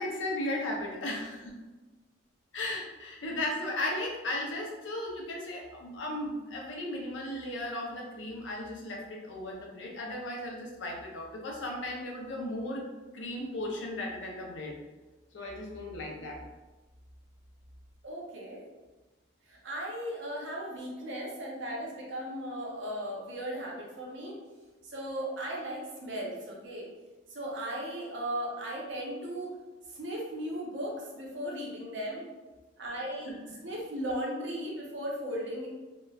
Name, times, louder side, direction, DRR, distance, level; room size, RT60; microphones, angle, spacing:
voice 1, 0.0-1.5 2.5-12.8 13.1-14.7 15.3-16.4, left 1 dB, 80° left, -1 dB, 0.6 m, -36 dB
voice 2, 18.0-18.6 19.5-24.4 24.8-26.9 27.3-29.6 29.9-32.2 32.8-33.3 33.6-35.7, equal, 70° right, -3 dB, 0.7 m, -36 dB
2.9 x 2.1 x 2.3 m, 1.2 s
head